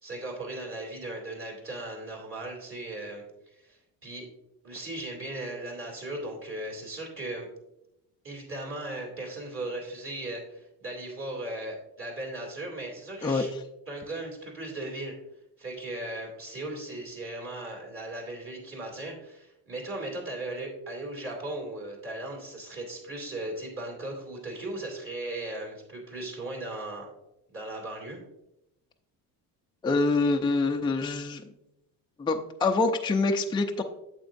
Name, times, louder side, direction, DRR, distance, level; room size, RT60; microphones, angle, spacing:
voice 1, 0.0-4.3 4.6-7.5 8.2-13.5 13.9-15.1 15.6-27.1 27.5-28.2, right 1 dB, 35° right, -1 dB, 2.6 m, -37 dB
voice 2, 29.8-31.5 32.2-33.8, left 3 dB, 10° left, 3 dB, 0.5 m, -25 dB
8.8 x 7.3 x 2.6 m, 0.88 s
cardioid pair, 120°, 39 cm